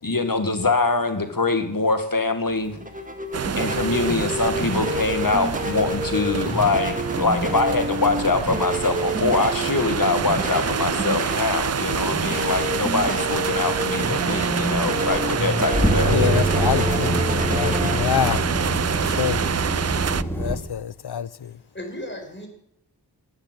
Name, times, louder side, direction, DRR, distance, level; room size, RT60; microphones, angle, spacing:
voice 1, 0.0-2.8 3.6-16.5, left 3 dB, 55° left, 2.0 m, -24 dB
sound 1, 2.5-20.7, equal, 20° right, 1.9 m, -29 dB
sound 2, 3.3-20.2, right 7 dB, 40° right, 0.4 m, -27 dB
sound 3, 15.0-20.5, equal, 5° left, 2.8 m, -25 dB
voice 2, 16.1-18.4 19.0-19.4 20.4-21.3, left 9 dB, 75° left, 0.6 m, -25 dB
voice 3, 21.4-22.5, left 1 dB, 30° left, 4.7 m, -36 dB
11.5 x 9.1 x 8.0 m
wide cardioid pair, 45°, 40 cm